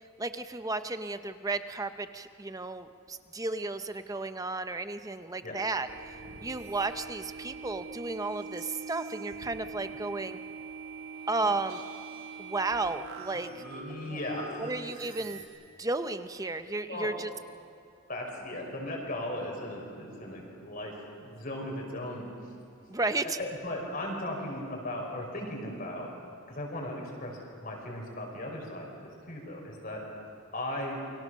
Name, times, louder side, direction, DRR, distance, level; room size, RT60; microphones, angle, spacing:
voice 1, 0.2-10.4 11.3-11.8 12.4-13.6 14.1-14.2 14.6-15.4 15.8-17.3 22.9-23.4, right 3 dB, 15° right, 10 dB, 0.6 m, -33 dB
sound 1, 5.8-15.5, right 4 dB, 90° right, 4.4 m, -43 dB
voice 2, 13.3-14.7 16.9-17.1 18.1-22.2 23.2-26.1 26.5-30.0 30.5-31.0, left 1 dB, 45° left, 0 dB, 5.2 m, -37 dB
29.0 x 23.5 x 6.4 m, 2.4 s
head